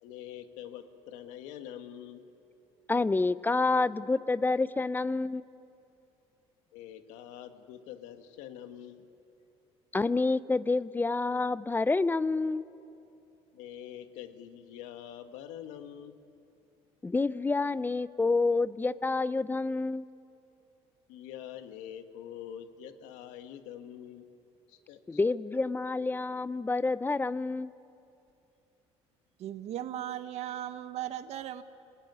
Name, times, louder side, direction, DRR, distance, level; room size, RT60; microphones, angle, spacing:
voice 1, 0.0-2.2 6.7-9.0 13.5-16.2 21.1-24.2 24.7-25.2, left 10 dB, 90° left, 7 dB, 1.7 m, -45 dB
voice 2, 2.9-5.5 9.9-12.6 17.0-20.1 25.1-27.7, left 3 dB, 15° left, 16 dB, 0.6 m, -28 dB
voice 3, 29.4-31.6, right 12 dB, 65° right, 10 dB, 1.3 m, -37 dB
29.0 x 19.0 x 9.5 m, 2.7 s
cardioid pair, 105°, 12 cm